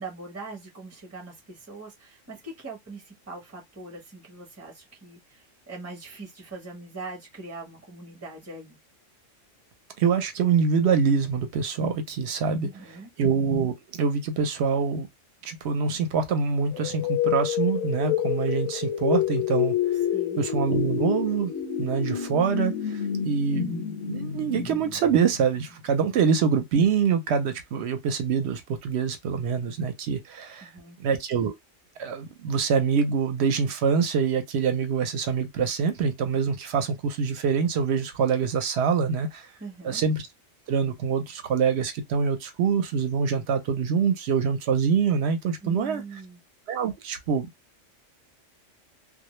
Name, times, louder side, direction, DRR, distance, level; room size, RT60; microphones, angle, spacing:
voice 1, 0.0-8.8 12.6-13.1 20.1-20.4 30.6-31.0 39.6-40.0 45.6-46.4, right 3 dB, 15° right, 0.7 m, -41 dB
voice 2, 10.0-12.7 13.2-15.1 15.4-19.7 20.4-21.5 21.8-23.7 24.0-30.7 31.0-31.5 32.0-39.5 39.8-40.3 40.7-46.0 46.7-47.5, right 6 dB, 70° right, 0.8 m, -25 dB
sound 1, 16.7-25.6, left 10 dB, 90° left, 1.0 m, -28 dB
2.2 x 2.0 x 2.9 m
omnidirectional pair, 1.3 m